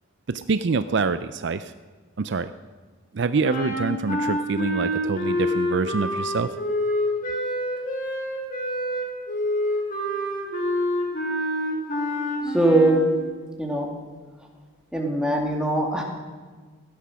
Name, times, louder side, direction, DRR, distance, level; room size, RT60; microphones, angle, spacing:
voice 1, 0.3-1.7 2.2-2.5 3.1-6.5, right 4 dB, 55° right, 12 dB, 0.4 m, -25 dB
sound 1, 3.4-13.1, equal, 40° left, 2.6 m, -27 dB
voice 2, 12.5-13.0 13.6-13.9 14.9-16.0, right 2 dB, 5° right, 0 dB, 2.3 m, -21 dB
16.5 x 12.0 x 6.2 m, 1.5 s
head